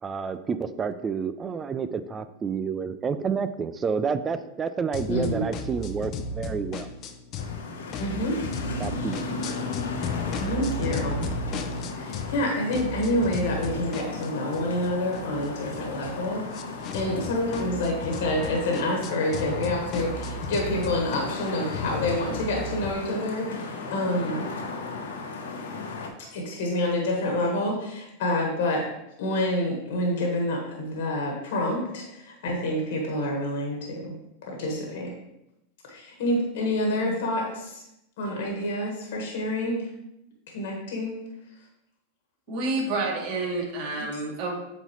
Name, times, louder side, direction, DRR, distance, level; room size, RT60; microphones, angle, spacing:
voice 1, 0.0-6.9 8.8-9.3, right 6 dB, 20° right, 11 dB, 0.3 m, -29 dB
sound 1, 4.9-7.6 7.9-12.4 12.7-22.9, left 2 dB, 40° left, 0.6 m, -35 dB
voice 2, 5.1-5.5 8.0-8.4 10.4-11.2 11.9-16.4 16.9-24.5 26.2-28.9 29.2-34.1 34.4-35.1 35.9-37.8 38.2-39.9 40.5-41.2, left 1 dB, 75° left, 0 dB, 1.4 m, -28 dB
sound 2, 7.3-26.1, left 3 dB, 90° left, 1.0 m, -36 dB
voice 3, 42.5-44.5, right 2 dB, 50° right, -3 dB, 2.2 m, -29 dB
7.8 x 4.0 x 3.1 m, 0.86 s
hypercardioid pair, 120°, 0 cm